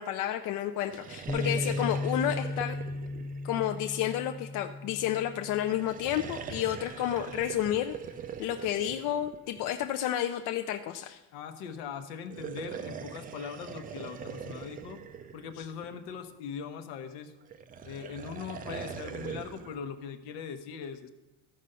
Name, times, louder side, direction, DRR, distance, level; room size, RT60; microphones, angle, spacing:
voice 1, 0.0-2.8 3.4-8.0 8.4-11.2 15.6-15.7, left 11 dB, 55° left, 7 dB, 0.5 m, -31 dB
sound 1, 0.8-4.4 5.7-10.0 12.2-16.2 17.5-19.8, right 7 dB, 25° right, 0.3 m, -42 dB
Bass guitar, 1.3-7.5, left 2 dB, ahead, 0.7 m, -36 dB
voice 2, 11.3-15.0 15.3-17.3 17.8-21.1, left 7 dB, 90° left, 8 dB, 1.0 m, -40 dB
14.0 x 5.2 x 5.4 m, 1.1 s
cardioid pair, 165°, 38 cm